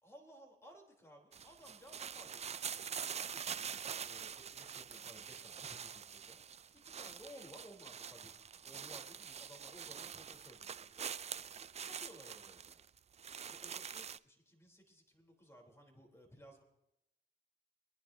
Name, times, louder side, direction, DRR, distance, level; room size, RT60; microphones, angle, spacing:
voice 1, 0.0-2.7 3.0-3.7 4.0-6.4 6.7-11.1 11.8-12.8 13.4-16.6, equal, 15° left, 1 dB, 3.5 m, -58 dB
sound 1, 1.3-14.2, right 7 dB, 35° right, 0.4 m, -45 dB
26.0 x 10.5 x 2.8 m, 0.89 s
cardioid pair, 90°, 20 cm